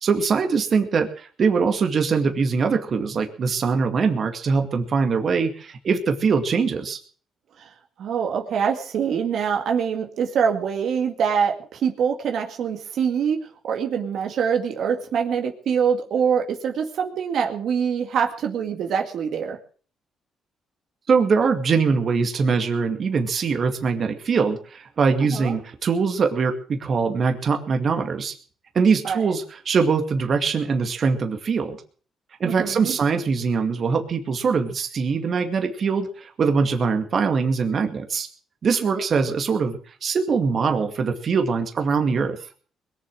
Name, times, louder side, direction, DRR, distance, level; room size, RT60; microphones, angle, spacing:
voice 1, 0.0-7.0 21.1-28.3 28.7-31.8 32.4-38.3 38.6-42.4, right 5 dB, 50° right, 5 dB, 2.2 m, -22 dB
voice 2, 8.0-13.4 13.6-19.6 25.3-25.5 29.0-29.3 32.5-32.9 38.9-39.0, right 7 dB, 70° right, 3 dB, 2.1 m, -24 dB
21.5 x 7.4 x 7.6 m, 0.43 s
cardioid pair, 90°, 0 cm